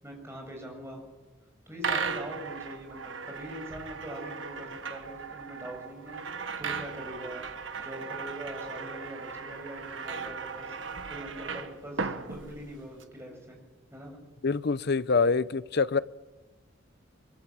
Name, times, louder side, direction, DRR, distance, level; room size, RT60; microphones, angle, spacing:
voice 1, 0.0-1.0 1.7-7.4 7.8-10.8 11.1-13.6 13.9-14.2, right 1 dB, 15° right, 7.1 m, -42 dB
sound 1, 1.8-13.0, right 5 dB, 70° right, 1.6 m, -37 dB
voice 2, 14.4-16.0, left 4 dB, 55° left, 0.7 m, -25 dB
24.0 x 23.5 x 7.6 m
head